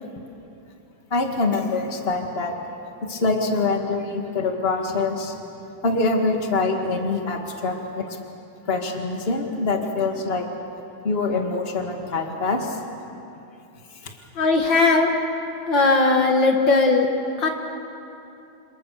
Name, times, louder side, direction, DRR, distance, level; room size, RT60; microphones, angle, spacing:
voice 1, 1.1-2.5 3.0-5.3 5.8-8.2 8.7-10.5 11.0-12.8 14.0-14.1, left 3 dB, 30° left, 2 dB, 2.2 m, -24 dB
voice 2, 14.4-15.1 15.7-17.1 17.4-17.5, left 3 dB, 65° left, 3 dB, 2.3 m, -18 dB
28.0 x 27.5 x 6.8 m, 2.8 s
omnidirectional pair, 2.3 m